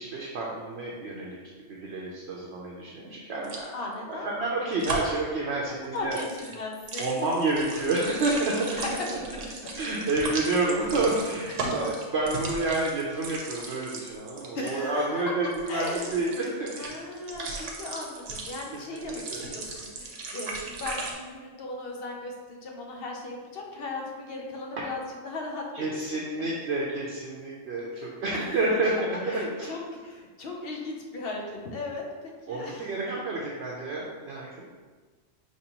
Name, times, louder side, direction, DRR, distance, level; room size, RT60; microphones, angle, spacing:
voice 1, 0.0-1.4 1.7-3.7 4.1-6.2 7.0-8.8 9.8-17.0 17.5-17.6 18.9-19.4 19.7-19.8 25.7-29.7 32.5-34.7, right 2 dB, 65° right, -4 dB, 0.9 m, -29 dB
sound 1, 3.4-3.7 4.8-5.2 6.0-14.7 15.5-21.1, right 3 dB, 85° right, 1.1 m, -37 dB
voice 2, 3.7-4.3 5.9-7.3 8.7-8.9 11.6-11.7 14.5-15.3 15.7-16.3 16.8-25.9 27.9-28.8 29.2-32.9, left 2 dB, 55° left, 0 dB, 0.9 m, -37 dB
5.3 x 3.0 x 2.9 m, 1.4 s
omnidirectional pair, 1.2 m